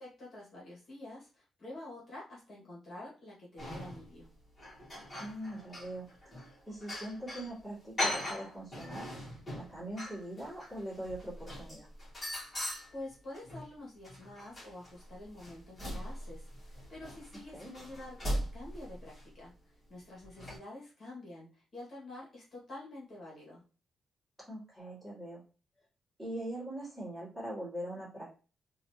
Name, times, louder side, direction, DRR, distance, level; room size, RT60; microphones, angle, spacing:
voice 1, 0.0-4.3 12.9-19.5 19.9-23.6, left 1 dB, 40° left, -5 dB, 1.8 m, -48 dB
sound 1, 3.6-4.2 4.6-7.5 8.0-13.7 14.0-19.3 20.2-20.6, equal, 20° left, 2.1 m, -40 dB
voice 2, 5.2-9.1 9.5-11.9 17.5-17.7 24.5-25.4 26.2-28.3, right 1 dB, 5° right, -8 dB, 2.2 m, -42 dB
4.0 x 2.8 x 2.8 m, 0.35 s
wide cardioid pair, 160°, 0 cm